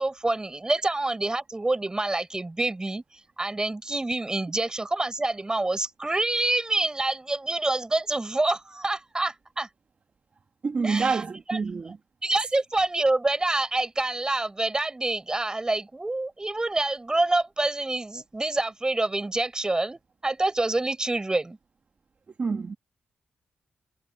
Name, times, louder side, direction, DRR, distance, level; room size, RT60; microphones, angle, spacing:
voice 1, 0.0-3.0 3.4-9.7 10.8-11.2 11.5-11.6 12.2-21.6, right 2 dB, 20° right, 6.9 m, -27 dB
voice 2, 10.6-12.0 22.4-22.8, right 4 dB, 45° right, 1.7 m, -27 dB
cardioid pair, 85°, 4 cm